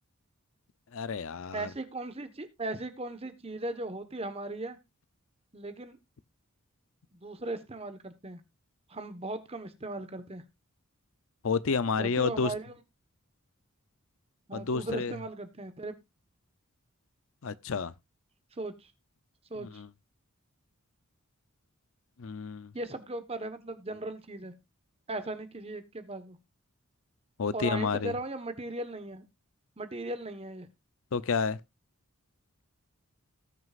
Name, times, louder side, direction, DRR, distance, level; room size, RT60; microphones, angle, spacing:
voice 1, 0.9-1.7 11.4-12.5 14.5-15.2 17.4-17.9 19.6-19.9 22.2-22.7 27.4-28.1 31.1-31.6, left 5 dB, 65° left, 0.6 m, -30 dB
voice 2, 1.5-4.8 5.5-6.0 7.1-8.4 8.9-10.4 12.0-12.7 14.5-16.0 18.6-18.9 19.5-19.8 22.7-24.5 25.1-26.4 27.5-29.2 29.8-30.7, right 2 dB, 25° right, 1.2 m, -38 dB
18.5 x 6.4 x 2.4 m
head